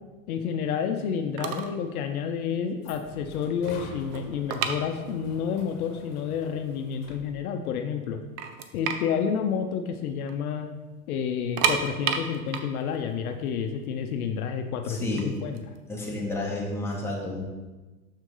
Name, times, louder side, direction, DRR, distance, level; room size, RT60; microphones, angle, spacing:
voice 1, 0.3-8.2 8.7-10.7 11.1-15.6, left 7 dB, 70° left, 6 dB, 0.8 m, -30 dB
sound 1, 1.1-1.2 1.4-1.8 2.1-2.3 2.8-2.9 3.2-5.5 5.7-5.8 6.5-6.6 6.9-7.7 8.0-8.1 8.4-10.4 10.6-10.8 11.3-14.2 15.0-16.7, right 7 dB, 40° right, 0.7 m, -31 dB
sound 2, 2.1-7.4, left 4 dB, 50° left, 1.4 m, -47 dB
voice 2, 14.9-15.3 15.9-17.4, left 2 dB, 5° left, -4 dB, 1.7 m, -31 dB
6.6 x 6.0 x 3.8 m, 1.2 s
hypercardioid pair, 110°, 46 cm